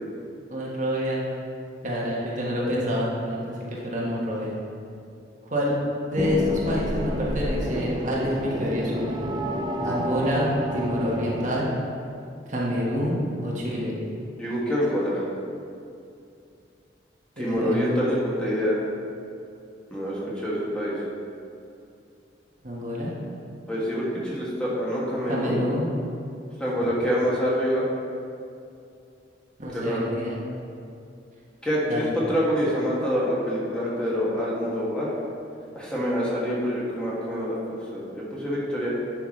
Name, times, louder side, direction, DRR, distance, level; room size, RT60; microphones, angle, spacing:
voice 1, 0.5-1.2 1.8-3.5 3.8-4.5 5.5-5.7 6.1-9.1 9.8-11.7 12.5-13.9 17.4-18.0 22.6-23.1 25.3-25.9 29.6-30.4 31.9-32.1, equal, 45° right, -5 dB, 1.3 m, -27 dB
sound 1, 6.2-11.8, right 1 dB, 25° right, 0.5 m, -29 dB
voice 2, 14.4-15.2 17.4-18.8 19.9-21.0 23.7-25.6 26.6-27.8 29.7-30.1 31.6-35.1 35.7-38.9, equal, 5° left, -7 dB, 1.7 m, -26 dB
10.5 x 5.9 x 3.2 m, 2.5 s
head